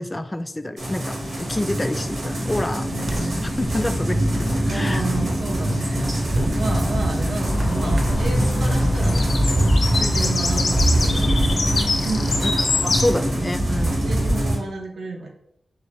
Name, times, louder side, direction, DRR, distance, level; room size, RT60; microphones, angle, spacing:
voice 1, 0.0-5.0 12.4-12.5 12.8-14.0, left 1 dB, 20° left, 9 dB, 0.3 m, -28 dB
sound 1, 0.8-14.6, right 1 dB, 70° right, 1.5 m, -22 dB
sound 2, 2.8-9.3, right 1 dB, 40° right, 0.6 m, -36 dB
voice 2, 2.9-3.4 4.7-11.7 12.0-12.3 13.1-13.2 14.0-15.3, right 3 dB, 90° right, 1 dB, 0.6 m, -32 dB
sound 3, 7.4-13.1, left 3 dB, 70° left, 0.6 m, -26 dB
4.8 x 2.5 x 3.0 m, 0.74 s
wide cardioid pair, 85°, 0 cm